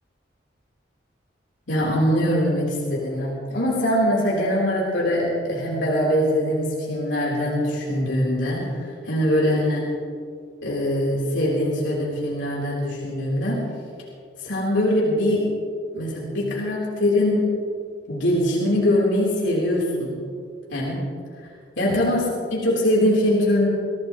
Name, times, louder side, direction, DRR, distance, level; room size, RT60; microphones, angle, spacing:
voice 1, 1.7-9.9 10.6-13.7 14.4-15.5 15.9-17.5 18.1-20.2 20.7-21.1 21.8-23.7, left 1 dB, 80° left, -5 dB, 3.8 m, -22 dB
23.5 x 17.0 x 3.1 m, 2.3 s
head